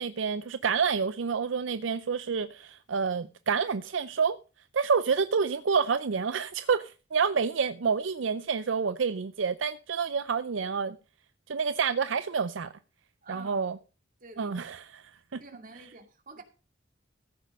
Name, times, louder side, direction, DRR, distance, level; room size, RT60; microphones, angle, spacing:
voice 1, 0.0-4.4 4.7-11.0 11.5-12.7 13.3-13.8 14.4-14.8 15.3-15.4, right 5 dB, 75° right, 0.5 m, -28 dB
voice 2, 13.2-13.7 14.2-14.8 15.4-16.4, right 2 dB, 45° right, 2.4 m, -47 dB
15.0 x 6.7 x 5.3 m
head